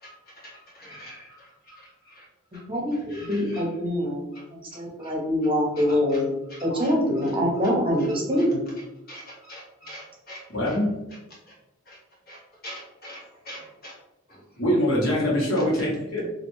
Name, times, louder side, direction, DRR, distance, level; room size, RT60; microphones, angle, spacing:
voice 1, 0.0-2.2 2.9-4.0 4.3-4.4 4.7-5.1 5.7-6.2 6.5-7.3 8.0-8.1 8.4-8.5 9.1-10.8 11.5-11.6 11.8-12.0 12.3-14.0 14.3-14.4, equal, 50° left, -6 dB, 1.5 m, -45 dB
voice 2, 2.5-4.3 4.5-6.3 6.6-8.6, equal, 25° right, -2 dB, 0.8 m, -24 dB
voice 3, 10.5-10.9 14.6-16.3, equal, 80° left, -4 dB, 1.2 m, -24 dB
3.2 x 2.5 x 3.0 m, 0.93 s
head